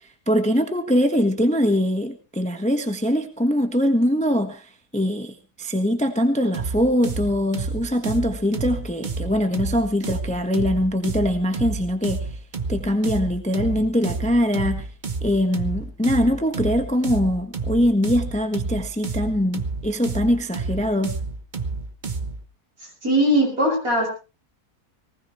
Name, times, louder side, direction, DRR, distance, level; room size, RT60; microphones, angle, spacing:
voice 1, 0.3-4.7 4.9-12.3 12.7-14.9 15.2-21.1, equal, 5° left, 1.2 m, -22 dB
sound 1, 6.5-22.4, right 4 dB, 35° right, 1.1 m, -30 dB
voice 2, 23.0-24.1, right 1 dB, 60° right, 7.5 m, -19 dB
20.0 x 19.0 x 3.1 m
omnidirectional pair, 1.7 m